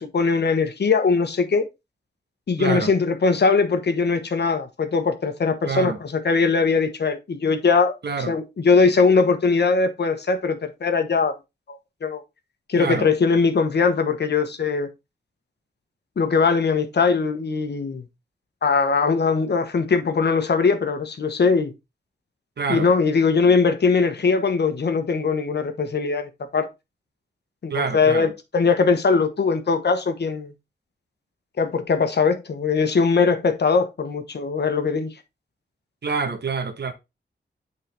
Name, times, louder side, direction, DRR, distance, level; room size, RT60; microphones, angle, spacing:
voice 1, 0.0-1.6 2.5-7.9 8.3-11.3 11.7-12.2 12.7-14.9 16.2-18.0 18.6-21.7 22.7-26.7 27.6-30.5 31.6-35.1, left 4 dB, 65° left, 1.1 m, -21 dB
voice 2, 2.6-2.9 5.6-6.0 8.0-8.4 12.8-13.1 22.6-22.9 27.7-28.3 36.0-36.9, right 5 dB, 65° right, 1.1 m, -26 dB
8.6 x 3.9 x 3.4 m
wide cardioid pair, 135°, 18 cm